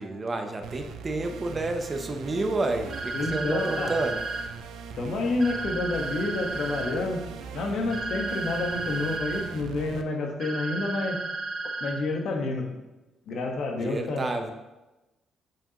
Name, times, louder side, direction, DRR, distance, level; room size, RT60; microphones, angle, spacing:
voice 1, 0.0-4.2 13.8-14.5, right 2 dB, 30° right, 5 dB, 0.7 m, -30 dB
sound 1, 0.6-10.0, right 6 dB, 85° right, 0.4 m, -41 dB
sound 2, 2.9-4.4 5.4-6.9 7.9-9.4 10.4-11.9, right 3 dB, 45° right, 1.5 m, -33 dB
voice 2, 3.1-3.9 5.0-7.2 7.5-11.2 11.8-12.7 13.3-14.5, left 2 dB, 70° left, 2 dB, 1.2 m, -29 dB
7.7 x 4.9 x 2.9 m, 1.1 s
cardioid pair, 90°, 0 cm